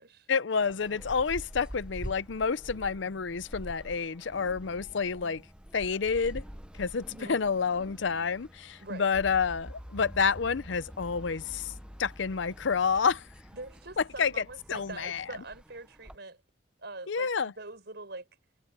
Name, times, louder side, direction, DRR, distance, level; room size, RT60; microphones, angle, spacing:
voice 1, 0.3-5.4 5.7-6.4 6.8-11.7 12.0-13.2 14.2-14.3 14.7-15.2 17.1-17.5, left 5 dB, 65° left, 0.6 m, -29 dB
sound 1, 0.6-16.2, equal, 5° right, 0.7 m, -48 dB
sound 2, 4.2-15.5, equal, 10° left, 2.9 m, -50 dB
voice 2, 7.1-7.4 8.8-9.1 13.5-16.4 16.8-18.3, right 2 dB, 60° right, 7.2 m, -44 dB
head